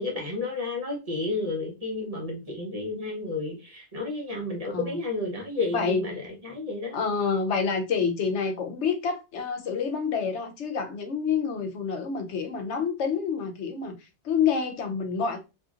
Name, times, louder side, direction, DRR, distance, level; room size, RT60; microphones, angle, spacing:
voice 1, 0.0-7.0, left 2 dB, 35° right, 1.0 m, -31 dB
voice 2, 4.7-5.0 5.7-6.0 6.9-14.0 14.2-15.4, left 6 dB, 80° left, 0.9 m, -28 dB
2.8 x 2.6 x 2.4 m
omnidirectional pair, 1.2 m